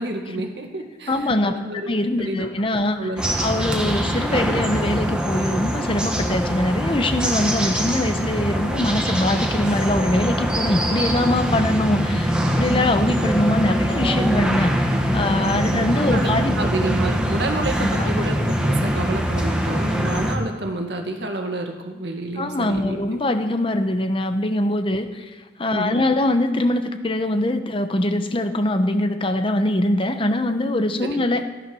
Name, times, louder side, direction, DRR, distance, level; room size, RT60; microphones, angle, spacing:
voice 1, 0.0-2.5 2.9-3.3 15.4-16.3 16.6-23.0 25.7-26.0 31.0-31.2, right 2 dB, 65° right, 3 dB, 2.0 m, -29 dB
voice 2, 1.1-1.6 1.9-3.1 3.4-16.7 17.7-18.2 22.3-25.3 25.6-31.5, left 1 dB, 30° left, 8 dB, 0.8 m, -23 dB
sound 1, 3.2-20.4, equal, 5° right, 1.4 m, -23 dB
14.5 x 10.0 x 6.2 m, 1.4 s
head